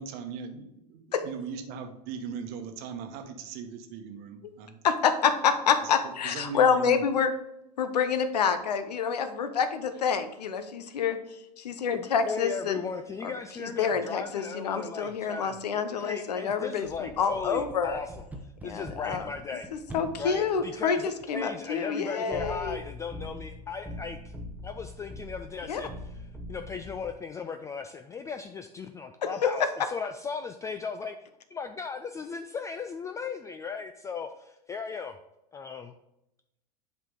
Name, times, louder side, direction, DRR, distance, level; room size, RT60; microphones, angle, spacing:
voice 1, 0.0-4.8 6.2-7.0, right 6 dB, 50° right, 6 dB, 1.1 m, -38 dB
voice 2, 4.8-7.3 7.8-11.2 11.6-12.8 13.2-13.3 13.6-18.0 18.6-19.3 19.7-22.8 25.7-25.8 29.2-29.3, left 6 dB, 80° left, 10 dB, 0.8 m, -27 dB
voice 3, 11.9-18.1 18.4-19.7 20.2-24.3 24.6-26.1 26.5-31.2 31.5-35.2 35.5-35.9, left 5 dB, 15° left, 7 dB, 0.3 m, -37 dB
sound 1, 16.8-21.5 22.3-27.1, equal, 10° right, 0.8 m, -43 dB
7.9 x 4.9 x 3.8 m, 0.87 s
hypercardioid pair, 95°, 21 cm